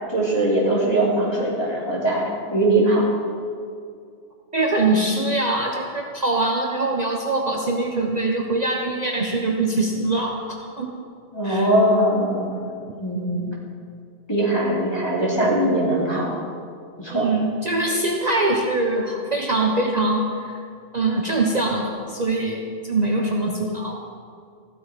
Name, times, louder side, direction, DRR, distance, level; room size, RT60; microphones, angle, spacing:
voice 1, 0.1-3.1 11.3-12.6 13.0-13.5 14.3-16.3 17.0-17.3, right 1 dB, 25° left, -6 dB, 3.5 m, -21 dB
voice 2, 4.5-10.9 11.4-11.7 13.1-13.5 17.1-20.6 20.9-24.0, right 2 dB, 40° right, 0 dB, 1.1 m, -23 dB
15.0 x 12.0 x 5.2 m, 2.3 s
omnidirectional pair, 1.1 m